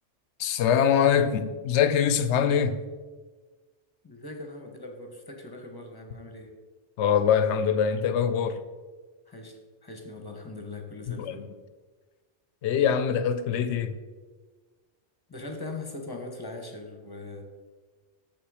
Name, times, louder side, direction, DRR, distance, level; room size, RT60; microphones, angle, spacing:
voice 1, 0.4-2.8 7.0-8.6 11.2-11.4 12.6-13.9, left 8 dB, 75° left, 0.9 m, -23 dB
voice 2, 4.0-6.5 9.3-11.4 15.3-17.4, left 2 dB, 20° left, 1.0 m, -40 dB
7.0 x 5.8 x 4.9 m
omnidirectional pair, 1.2 m